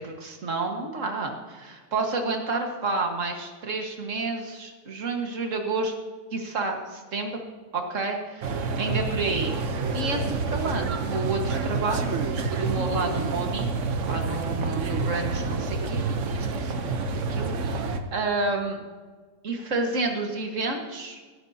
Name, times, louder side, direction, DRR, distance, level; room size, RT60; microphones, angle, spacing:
voice 1, 0.0-5.9 6.3-7.4 7.7-9.5 9.9-12.1 12.5-18.8 19.4-21.2, right 3 dB, 40° right, 3 dB, 1.7 m, -30 dB
sound 1, 8.4-18.0, right 4 dB, 60° right, 0.8 m, -28 dB
16.5 x 14.0 x 2.8 m, 1.5 s
omnidirectional pair, 2.4 m